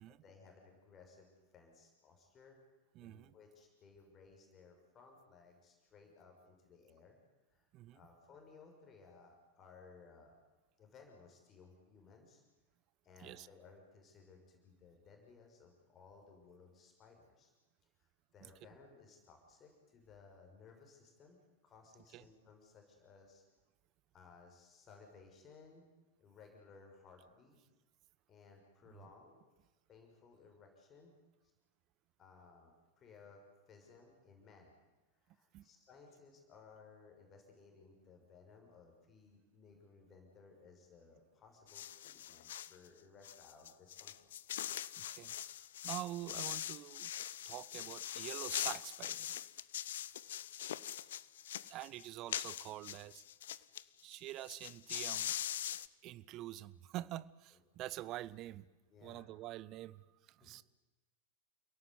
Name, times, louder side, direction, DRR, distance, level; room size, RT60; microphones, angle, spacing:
voice 1, 0.1-2.6 3.0-7.2 7.5-10.4 10.8-12.4 13.0-17.5 18.0-23.4 24.1-25.9 26.2-27.6 28.3-29.4 29.9-31.2 32.2-34.7 35.2-44.2 57.5-57.6 58.9-59.3 60.4-60.5, left 4 dB, 25° left, 2 dB, 6.2 m, -60 dB
voice 2, 2.9-3.3 7.7-8.0 13.2-13.5 18.4-18.5 22.1-22.2 35.5-35.7 44.9-47.1 47.4-49.4 51.7-53.2 54.0-55.4 56.0-58.7 59.0-60.6, right 15 dB, 35° right, 18 dB, 0.9 m, -46 dB
sound 1, 41.7-42.8 43.2-53.8 54.1-54.2 54.4-55.9, left 11 dB, 60° left, 0.7 m, -42 dB
29.0 x 17.5 x 9.6 m, 1.2 s
figure-of-eight pair, 90°, 0 cm